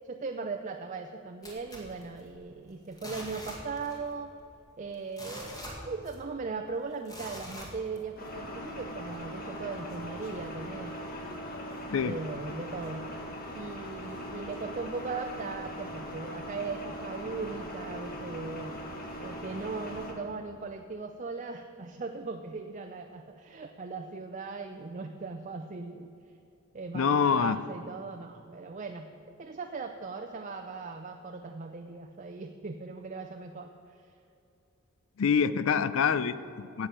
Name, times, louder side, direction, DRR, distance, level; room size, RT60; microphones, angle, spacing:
voice 1, 0.0-4.3 4.8-10.9 12.0-13.1 13.5-18.8 19.2-26.1 26.7-34.1, right 4 dB, 35° right, 5 dB, 0.5 m, -39 dB
sound 1, 1.4-2.5 2.9-4.1 4.4-4.5 4.9-6.4 7.0-8.3 8.8-8.9, equal, 15° left, 2.0 m, -43 dB
sound 2, 8.2-20.1, equal, 45° left, 1.6 m, -40 dB
voice 2, 26.9-27.6 35.2-36.9, left 6 dB, 65° left, 15 dB, 0.4 m, -26 dB
10.5 x 8.2 x 7.4 m, 2.7 s
head